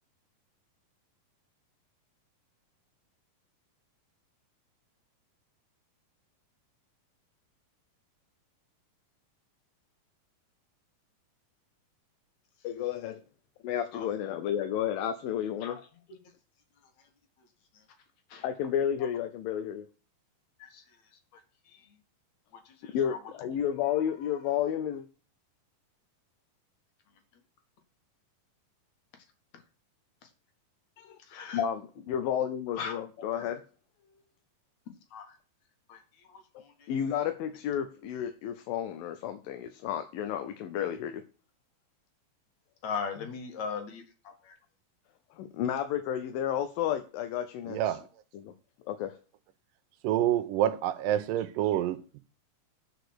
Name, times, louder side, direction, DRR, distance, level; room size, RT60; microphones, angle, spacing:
voice 1, 12.6-13.2 13.6-15.8 18.4-19.9 22.9-25.1 31.0-31.2 31.5-33.6 36.9-41.2 45.4-48.0 48.3-48.5 48.9-49.2, left 9 dB, 85° left, 2.5 m, -32 dB
voice 2, 22.7-23.2 31.3-31.6 32.7-33.5 35.1-35.3 35.9-36.0 36.3-36.9 42.8-44.6, left 6 dB, 60° left, 2.8 m, -39 dB
voice 3, 47.6-48.0 50.0-52.2, right 12 dB, 80° right, 2.3 m, -28 dB
8.6 x 5.1 x 6.4 m
omnidirectional pair, 4.0 m